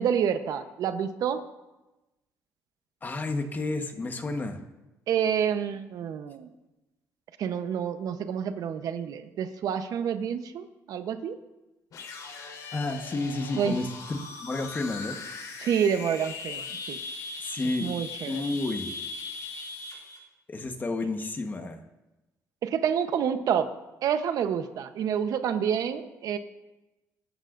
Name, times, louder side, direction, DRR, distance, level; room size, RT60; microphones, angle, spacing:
voice 1, 0.0-1.4 5.1-6.5 7.4-11.4 13.6-13.8 15.6-17.0 17.8-18.4 22.6-23.7 24.0-26.4, right 8 dB, 70° right, 9 dB, 0.9 m, -28 dB
voice 2, 3.0-4.6 12.7-15.2 17.4-17.9 18.3-18.9 20.5-21.8, left 2 dB, 30° left, 6 dB, 1.3 m, -31 dB
sound 1, 11.9-20.2, left 4 dB, 70° left, 3.7 m, -39 dB
23.0 x 12.0 x 2.6 m, 1.0 s
cardioid pair, 110°, 6 cm